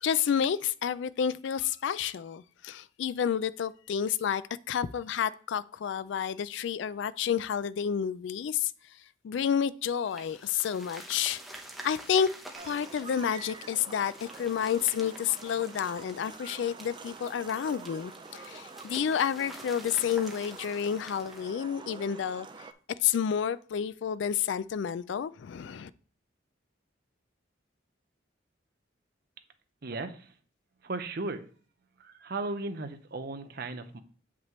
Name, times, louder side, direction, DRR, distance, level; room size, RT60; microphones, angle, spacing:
voice 1, 0.0-8.7 9.2-11.4 11.8-12.3 12.6-22.5 23.0-25.9, left 8 dB, 70° left, 0.3 m, -30 dB
sound 1, 10.1-21.5, right 1 dB, ahead, 0.9 m, -49 dB
sound 2, 12.5-22.7, right 4 dB, 25° right, 0.5 m, -47 dB
voice 2, 29.8-30.3 30.8-31.4 32.0-34.0, right 3 dB, 55° right, 0.7 m, -36 dB
7.4 x 5.9 x 3.1 m
head